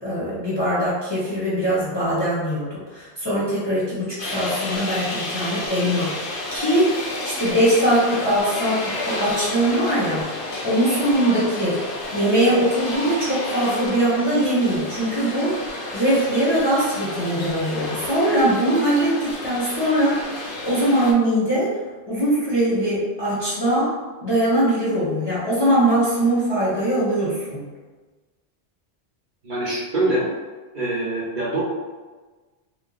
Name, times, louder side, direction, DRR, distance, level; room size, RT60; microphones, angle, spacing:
voice 1, 0.0-6.9 7.2-10.3 10.6-11.8 12.1-15.5 15.9-21.7 22.1-23.9 24.2-27.7, right 1 dB, 25° left, -9 dB, 0.7 m, -21 dB
sound 1, 4.2-21.1, left 2 dB, 60° left, 0.7 m, -31 dB
voice 2, 29.4-30.2 30.7-31.6, right 2 dB, 50° right, -6 dB, 0.9 m, -24 dB
2.8 x 2.0 x 3.9 m, 1.3 s
omnidirectional pair, 1.1 m